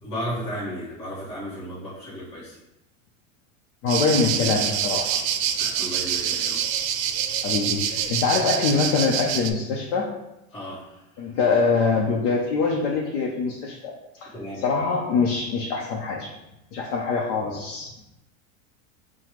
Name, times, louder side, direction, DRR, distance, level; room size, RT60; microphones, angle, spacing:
voice 1, 0.0-2.6 5.6-6.6 10.5-11.0 14.3-14.6, equal, 15° left, -9 dB, 1.1 m, -34 dB
voice 2, 3.8-5.2 7.4-10.1 11.2-13.9 14.2-16.3 16.7-17.9, left 4 dB, 60° left, -2 dB, 0.7 m, -24 dB
sound 1, 3.9-9.5, right 9 dB, 90° right, 0.5 m, -26 dB
5.7 x 2.3 x 3.0 m, 0.91 s
supercardioid pair, 150°, 40 cm